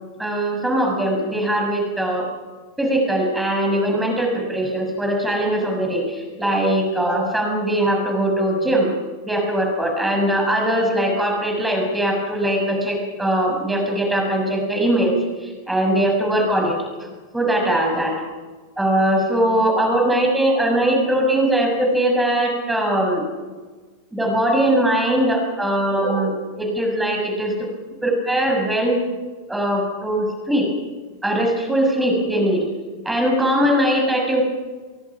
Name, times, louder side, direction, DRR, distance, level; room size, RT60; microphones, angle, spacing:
voice 1, 0.2-2.3 2.8-8.9 9.2-16.8 17.3-18.3 18.8-23.3 24.1-27.7 28.0-29.0 29.5-30.7 31.2-32.6 33.0-34.4, right 1 dB, 5° right, 2 dB, 6.3 m, -20 dB
25.5 x 22.5 x 6.0 m, 1.4 s
figure-of-eight pair, 90°, 0 cm